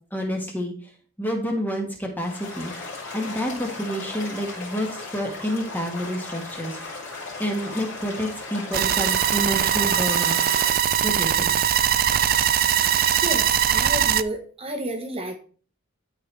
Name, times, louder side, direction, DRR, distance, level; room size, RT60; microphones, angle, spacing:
voice 1, 0.1-0.9 1.2-2.7 3.1-7.0 7.4-10.4 11.0-11.5, equal, 10° left, 1 dB, 1.4 m, -29 dB
sound 1, 2.2-10.7, left 3 dB, 55° left, 4.2 m, -36 dB
sound 2, 8.7-14.2, right 10 dB, 40° right, 0.4 m, -21 dB
voice 2, 13.2-15.4, right 1 dB, 25° right, 4 dB, 1.1 m, -31 dB
13.5 x 4.6 x 3.3 m, 0.41 s
head